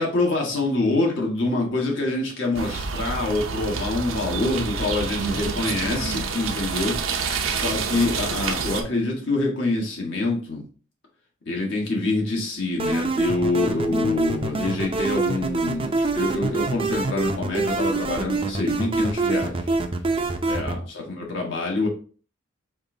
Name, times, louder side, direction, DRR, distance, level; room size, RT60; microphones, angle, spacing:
voice 1, 0.0-7.2 7.5-10.6 11.4-19.7 20.5-21.9, left 2 dB, 65° left, -1 dB, 1.3 m, -26 dB
sound 1, 2.5-8.8, right 5 dB, 80° right, 0.6 m, -28 dB
sound 2, 12.8-20.8, right 3 dB, 25° right, 0.4 m, -25 dB
5.3 x 2.6 x 3.7 m, 0.40 s
head